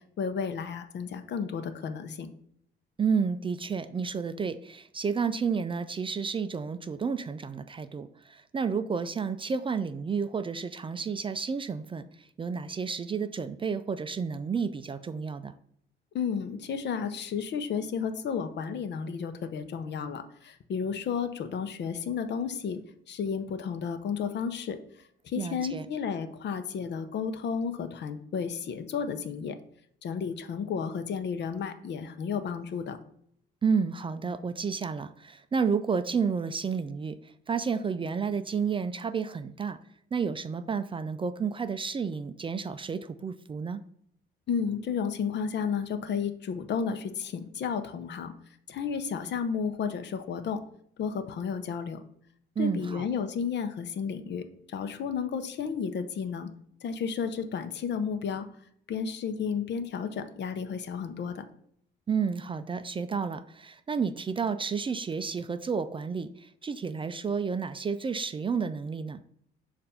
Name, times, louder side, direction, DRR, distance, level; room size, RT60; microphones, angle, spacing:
voice 1, 0.2-2.3 16.1-22.8 23.1-24.8 25.2-29.6 30.0-33.0 44.5-48.3 48.7-50.6 51.0-52.0 52.6-56.5 56.8-58.5 58.9-61.4, left 6 dB, 60° left, 9 dB, 0.7 m, -32 dB
voice 2, 3.0-15.5 25.4-25.9 33.6-39.8 40.1-43.8 52.6-53.0 62.1-69.2, right 5 dB, 25° right, 11 dB, 0.3 m, -31 dB
6.7 x 2.6 x 5.5 m, 0.66 s
cardioid pair, 90°, 20 cm